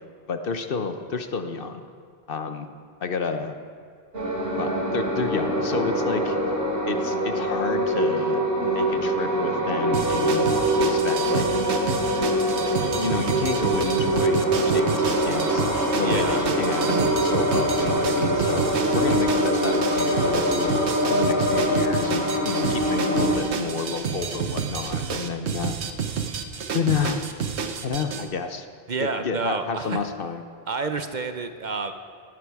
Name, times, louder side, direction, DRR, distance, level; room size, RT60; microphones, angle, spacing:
voice 1, 0.3-1.8 2.3-2.7 3.0-3.5 4.6-6.4 6.9-10.5 10.8-11.5 12.8-15.6 16.0-18.6 18.9-20.8 21.1-25.7 26.7-27.3 27.8-28.7 29.0-30.4, left 5 dB, 60° left, 8 dB, 1.0 m, -30 dB
sound 1, 4.1-23.4, equal, 65° right, 3.0 m, -24 dB
sound 2, 9.9-28.3, right 6 dB, 80° right, 1.2 m, -30 dB
voice 2, 16.0-16.4 16.9-17.2 28.9-30.0 30.7-31.9, right 4 dB, 50° right, 8 dB, 0.8 m, -29 dB
18.5 x 12.0 x 4.7 m, 2.1 s
omnidirectional pair, 1.1 m